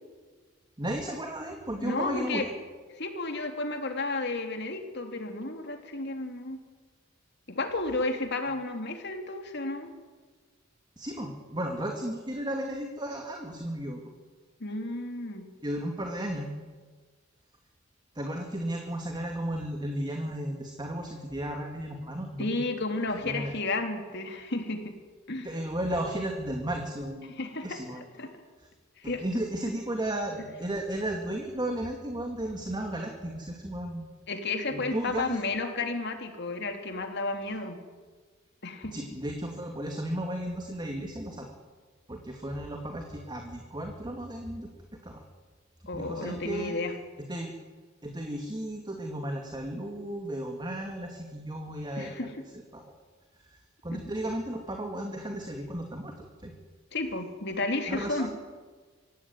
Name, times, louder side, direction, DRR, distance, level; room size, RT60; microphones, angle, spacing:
voice 1, 0.8-2.5 11.0-14.0 15.6-16.5 18.1-22.5 23.2-23.5 25.4-27.3 27.6-28.0 28.6-28.7 29.0-34.1 34.7-35.4 38.9-41.5 42.1-44.7 45.0-45.2 45.9-46.8 47.3-47.5 48.0-52.1 52.7-52.8 53.5-56.5 57.9-58.3, right 1 dB, 20° right, 2 dB, 2.5 m, -34 dB
voice 2, 1.8-2.4 3.0-6.6 7.5-9.9 14.6-15.5 22.4-24.9 25.3-25.5 27.4-28.3 29.0-29.2 34.3-37.8 38.6-38.9 45.9-46.9 52.0-52.3 53.9-54.0 56.9-58.3, left 2 dB, 60° left, 5 dB, 3.3 m, -32 dB
25.0 x 16.5 x 9.5 m, 1.4 s
head